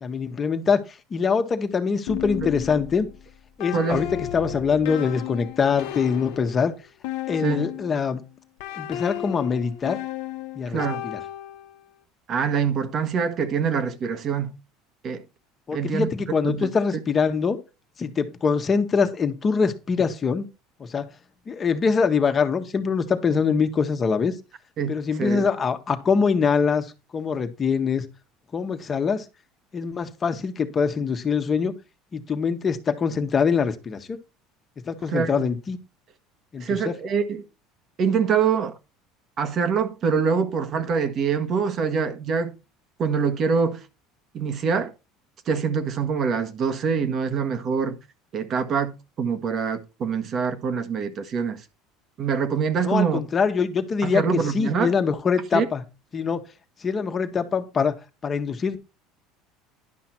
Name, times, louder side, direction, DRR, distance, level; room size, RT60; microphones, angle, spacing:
voice 1, 0.0-0.8 1.1-3.1 3.6-6.7 7.3-8.2 8.7-10.0 10.5-11.2 15.7-17.6 18.0-20.4 20.8-21.0 21.5-24.3 24.9-28.0 28.5-29.2 29.7-31.7 32.1-34.2 34.9-35.8 36.5-36.9 52.8-55.8 56.1-56.4 56.8-58.0 58.2-58.8, left 5 dB, 30° left, 1.5 m, -24 dB
sound 1, 2.1-8.0 8.6-11.8, left 13 dB, 75° left, 1.0 m, -34 dB
voice 2, 10.7-11.0 12.3-14.5 15.0-15.2 15.7-16.1 16.4-16.7 24.8-25.5 35.1-35.4 36.6-37.4 38.0-38.8 39.4-42.5 43.0-43.8 44.3-44.9 45.5-48.0 48.3-51.6 52.2-53.2 54.0-54.9 55.5-55.7, right 6 dB, 45° right, 1.6 m, -25 dB
11.0 x 5.7 x 4.5 m
supercardioid pair, 100°, 0 cm